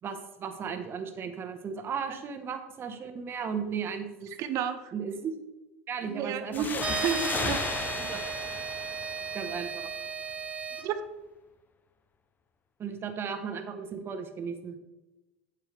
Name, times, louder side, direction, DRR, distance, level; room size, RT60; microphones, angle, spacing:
voice 1, 0.0-4.3 4.9-5.3 5.9-6.7 8.0-8.2 9.3-9.9 12.8-14.8, right 6 dB, 35° right, 7 dB, 1.2 m, -35 dB
voice 2, 4.4-4.9 6.1-7.6 10.8-11.0, right 8 dB, 55° right, 10 dB, 0.8 m, -32 dB
sound 1, 6.5-9.9, left 5 dB, 30° left, 0.7 m, -35 dB
sound 2, 6.8-10.8, right 6 dB, 20° right, 0.6 m, -35 dB
8.9 x 7.4 x 3.4 m, 1.0 s
hypercardioid pair, 85°, 6 cm